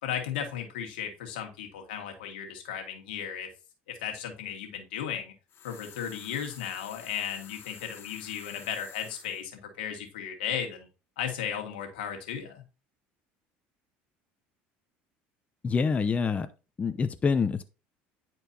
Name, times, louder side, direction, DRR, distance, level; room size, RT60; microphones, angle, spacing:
voice 1, 0.0-3.5 3.9-5.3 5.6-10.9 11.2-12.6, left 8 dB, 90° left, 3 dB, 1.7 m, -35 dB
sound 1, 5.5-9.4, left 9 dB, 50° left, 0.9 m, -49 dB
voice 2, 15.6-16.5 16.8-17.6, left 5 dB, 25° left, 10 dB, 0.6 m, -26 dB
9.9 x 4.5 x 2.8 m, 0.32 s
supercardioid pair, 90°, 5 cm